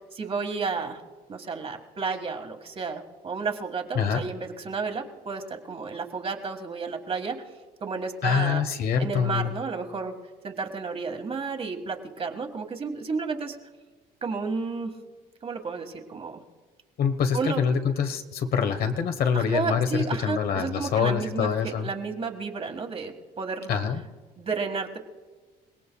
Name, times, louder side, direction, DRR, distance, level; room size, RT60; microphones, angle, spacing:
voice 1, 0.1-1.0 1.3-7.4 7.8-8.6 9.0-10.1 10.4-13.6 14.2-14.9 15.4-16.4 17.3-17.6 19.3-23.7 24.4-25.0, right 4 dB, 35° right, 4 dB, 1.7 m, -32 dB
voice 2, 8.2-9.5 17.0-21.9 23.7-24.0, left 7 dB, 65° left, 7 dB, 1.3 m, -25 dB
28.5 x 17.5 x 2.3 m, 1.4 s
cardioid pair, 110°, 17 cm